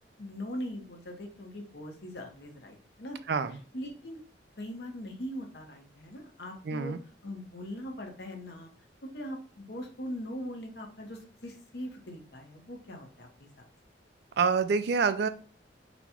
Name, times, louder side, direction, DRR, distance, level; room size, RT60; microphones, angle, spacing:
voice 1, 0.2-3.2 3.7-4.2 4.6-6.9 7.2-8.7 9.1-13.7, equal, 65° left, 3 dB, 1.0 m, -41 dB
voice 2, 3.3-3.6 6.7-7.0 14.4-15.3, right 5 dB, 60° right, 11 dB, 0.4 m, -26 dB
4.1 x 2.3 x 4.2 m, 0.41 s
head